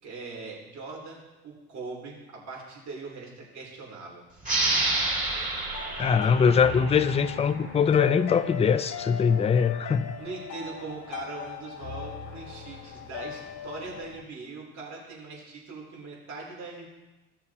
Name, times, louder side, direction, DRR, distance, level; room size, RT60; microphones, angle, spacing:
voice 1, 0.0-1.2 1.4-4.2 10.2-16.9, right 3 dB, 50° right, -3 dB, 3.3 m, -41 dB
sound 1, 4.4-7.7, right 2 dB, 25° right, 2.7 m, -29 dB
sound 2, 5.7-14.2, left 6 dB, 55° left, 1.1 m, -39 dB
voice 2, 6.0-10.1, left 6 dB, 20° left, 11 dB, 0.4 m, -22 dB
15.0 x 6.7 x 2.9 m, 1.1 s
supercardioid pair, 90°, 36 cm